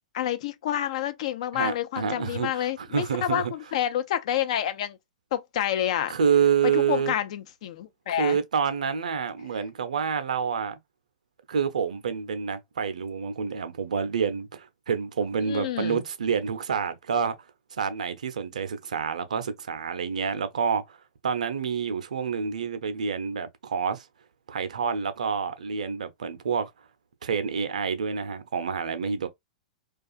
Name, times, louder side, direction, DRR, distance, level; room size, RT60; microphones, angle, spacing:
voice 1, 0.1-5.0 5.3-6.1 6.6-8.4 15.4-16.0, left 11 dB, 55° left, 0.4 m, -28 dB
voice 2, 1.5-3.5 6.1-7.1 8.1-10.8 11.5-17.3 17.7-21.0 21.2-24.1 24.5-26.7 27.2-29.3, right 6 dB, 70° right, 0.5 m, -28 dB
2.4 x 2.3 x 2.4 m
figure-of-eight pair, 100°, 4 cm